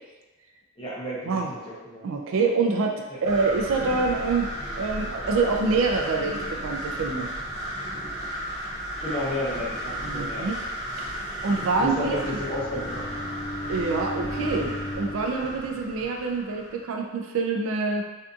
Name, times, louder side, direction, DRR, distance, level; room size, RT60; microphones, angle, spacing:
voice 1, 0.8-2.0 3.1-3.2 9.0-10.5 11.8-13.3, left 1 dB, 25° left, -7 dB, 0.7 m, -32 dB
voice 2, 2.0-4.5 4.8-7.3 10.0-10.6 11.0-11.9 12.2-12.4 13.7-18.1, right 4 dB, 70° right, 2 dB, 0.3 m, -26 dB
sound 1, 3.2-16.8, equal, 15° right, 0.5 m, -34 dB
Bowed string instrument, 11.7-15.4, left 1 dB, 90° left, 0.8 m, -36 dB
2.6 x 2.5 x 2.3 m, 1.1 s
head